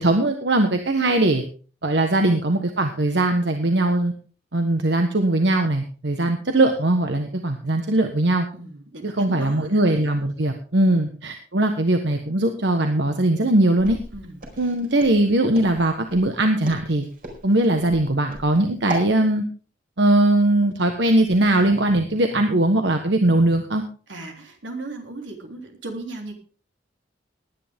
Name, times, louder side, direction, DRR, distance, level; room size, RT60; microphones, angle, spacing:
voice 1, 0.0-1.4 1.8-4.1 4.5-8.5 9.0-14.0 14.6-17.0 17.4-19.4 20.0-23.8, right 1 dB, 65° right, 5 dB, 1.4 m, -20 dB
voice 2, 8.5-9.8 10.7-11.1 14.1-14.7 24.1-26.3, right 2 dB, 90° right, 3 dB, 3.7 m, -37 dB
Walk footsteps, 13.8-19.1, equal, 50° right, 4.6 m, -36 dB
19.5 x 9.9 x 3.7 m, 0.39 s
head